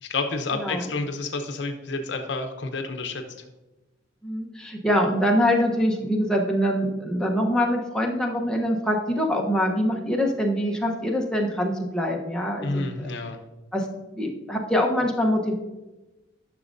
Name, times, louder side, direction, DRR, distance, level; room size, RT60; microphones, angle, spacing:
voice 1, 0.0-3.2 12.6-13.4, left 3 dB, 70° left, 6 dB, 0.7 m, -29 dB
voice 2, 0.6-0.9 4.2-13.1 13.7-13.9 14.1-15.5, equal, 5° left, -1 dB, 0.9 m, -24 dB
10.5 x 6.3 x 2.6 m, 1.1 s
head